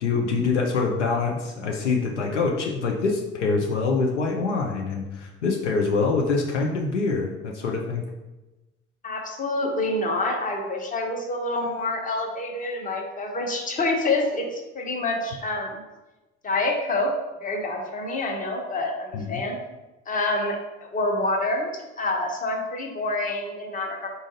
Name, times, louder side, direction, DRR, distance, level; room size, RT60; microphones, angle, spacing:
voice 1, 0.0-8.0 19.1-19.4, left 4 dB, 80° left, 1 dB, 0.5 m, -25 dB
voice 2, 9.0-15.8 16.4-17.1 17.4-19.6 20.1-24.1, left 2 dB, 25° left, 1 dB, 0.9 m, -27 dB
4.0 x 2.5 x 3.9 m, 1.1 s
figure-of-eight pair, 55°, 35 cm